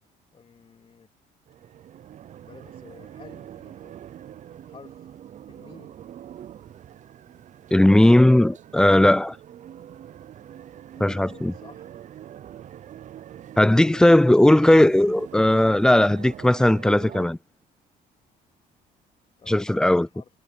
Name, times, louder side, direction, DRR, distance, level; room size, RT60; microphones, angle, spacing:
voice 1, 0.3-1.1 2.4-3.9 4.6-5.2 5.5-6.0 10.9-11.9 19.4-20.3, left 6 dB, 35° left, 3.3 m, -50 dB
sound 1, 1.5-17.3, right 10 dB, 45° right, 0.6 m, -44 dB
voice 2, 7.7-9.4 11.0-11.5 13.6-17.4 19.5-20.1, left 1 dB, 5° left, 0.3 m, -17 dB
cardioid pair, 110°, 17 cm